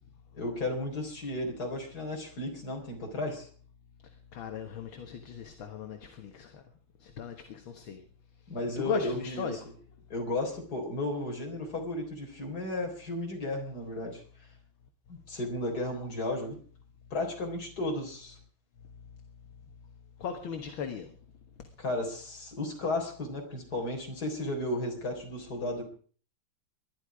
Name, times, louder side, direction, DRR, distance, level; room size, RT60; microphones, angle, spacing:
voice 1, 0.3-3.5 8.5-9.6 10.1-14.2 15.1-16.6 17.1-18.4 21.8-25.8, left 1 dB, 45° left, 2 dB, 4.5 m, -34 dB
voice 2, 4.3-6.6 7.0-8.0 8.8-9.6 20.2-21.1, left 7 dB, 65° left, 5 dB, 2.2 m, -37 dB
20.5 x 12.0 x 4.9 m, 0.44 s
omnidirectional pair, 2.4 m